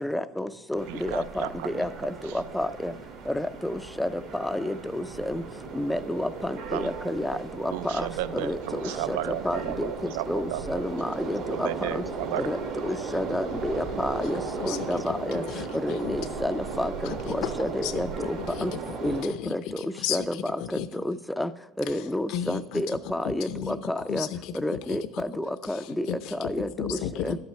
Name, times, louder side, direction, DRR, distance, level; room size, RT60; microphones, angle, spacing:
voice 1, 0.0-1.9 2.5-2.9 3.3-4.1 4.4-5.4 5.8-6.3 6.7-7.4 7.6-7.7 8.0-8.1 8.4-8.6 9.1-9.2 9.4-9.9 10.3-11.7 12.0-12.1 12.5-12.6 13.1-15.4 15.8-16.9 17.3-18.1 18.6-18.7 19.0-19.6 20.1-20.2 21.1-21.5 21.9-24.3 24.6-25.0 25.4-26.1 26.5-26.7 27.2-27.4, left 1 dB, 5° left, 12 dB, 0.3 m, -29 dB
sound 1, 0.8-19.2, right 4 dB, 65° right, 1.8 m, -36 dB
voice 2, 0.9-1.8 2.2-2.7 6.7-6.9 7.3-7.4 7.7-10.7 11.4-12.4, right 13 dB, 90° right, 15 dB, 0.3 m, -34 dB
voice 3, 14.6-15.2 15.5-15.6 16.0-16.1 17.4-17.5 17.8-18.0 19.4-19.5 19.8-20.2 20.7-20.9 22.3-22.6 23.5-23.8 24.1-24.5 24.9-25.0 26.1-26.5 26.8-27.4, left 11 dB, 65° left, 10 dB, 0.5 m, -32 dB
11.5 x 5.8 x 4.4 m, 1.0 s
cardioid pair, 135°, 0 cm